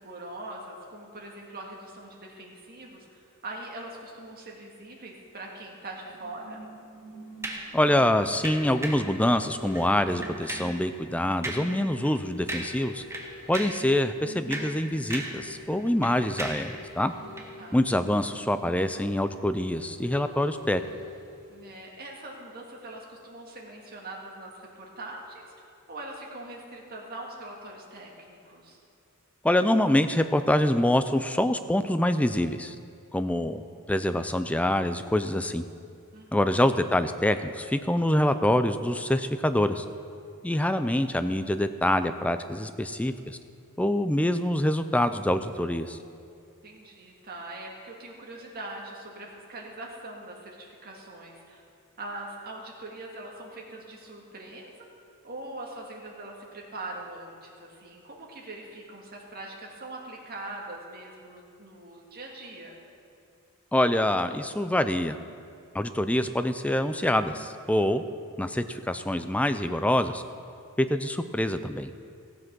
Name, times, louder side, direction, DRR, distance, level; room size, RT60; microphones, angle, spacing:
voice 1, 0.0-6.6 17.6-17.8 21.5-28.8 36.1-36.3 46.6-51.6 52.0-54.9 55.2-62.8, right 2 dB, 45° right, -1 dB, 1.9 m, -42 dB
sound 1, 6.1-22.3 22.7-22.8, left 1 dB, 80° left, 2.6 m, -46 dB
sound 2, 7.4-7.7 8.4-9.1 9.7-9.9 10.2-10.8 11.4-11.7 12.0-12.2 12.5-12.8 13.1-13.9 14.3-15.5 15.7-16.7 17.3-17.5, right 2 dB, 10° right, 1.1 m, -36 dB
voice 2, 7.7-13.0 13.5-17.1 17.7-20.8 29.4-32.8 33.1-33.6 33.9-35.6 36.3-39.8 40.4-43.4 43.8-46.0 63.7-65.2 65.7-68.0 68.4-70.2 70.8-72.2, left 1 dB, 5° left, 10 dB, 0.4 m, -25 dB
15.0 x 7.6 x 6.1 m, 2.4 s
head